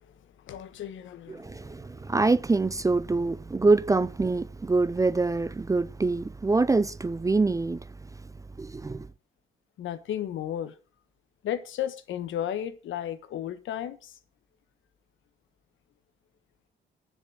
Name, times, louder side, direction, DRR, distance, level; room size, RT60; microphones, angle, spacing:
voice 1, 0.4-1.7 9.8-10.7 11.4-14.1, left 10 dB, 75° left, 1.3 m, -34 dB
voice 2, 1.3-7.8 8.6-9.1, right 3 dB, 15° right, 0.5 m, -25 dB
9.9 x 7.4 x 6.4 m
cardioid pair, 90°, 20 cm